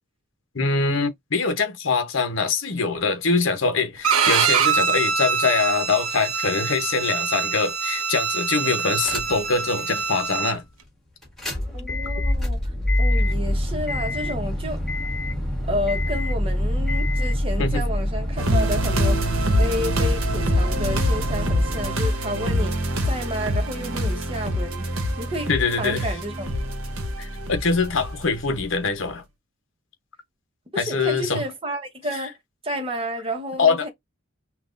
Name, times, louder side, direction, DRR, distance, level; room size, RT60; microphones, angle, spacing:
voice 1, 0.5-10.6 17.6-17.8 25.5-26.1 27.2-29.2 30.8-31.4 33.6-33.9, left 4 dB, 60° left, 0.9 m, -23 dB
Bowed string instrument, 4.0-10.6, right 6 dB, 85° right, 0.7 m, -24 dB
sound 1, 9.0-9.5 10.0-10.1 11.2-21.9, left 1 dB, ahead, 1.6 m, -26 dB
voice 2, 11.7-12.6 13.0-14.8 15.7-24.9 25.2-25.5 25.8-26.5 30.7-32.4 32.6-33.9, equal, 25° right, 0.9 m, -31 dB
sound 2, 18.4-28.6 29.1-29.2, equal, 70° right, 1.0 m, -25 dB
5.8 x 2.4 x 2.5 m
head